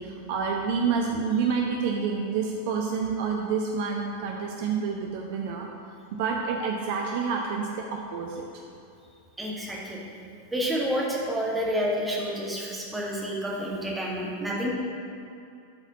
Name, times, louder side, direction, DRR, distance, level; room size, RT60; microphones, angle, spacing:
voice 1, 0.0-5.7 6.1-8.6, right 5 dB, 50° right, 1 dB, 0.6 m, -28 dB
voice 2, 9.4-10.0 10.5-14.7, equal, 10° right, -4 dB, 1.6 m, -29 dB
11.5 x 4.2 x 4.0 m, 2.6 s
figure-of-eight pair, 90°, 0 cm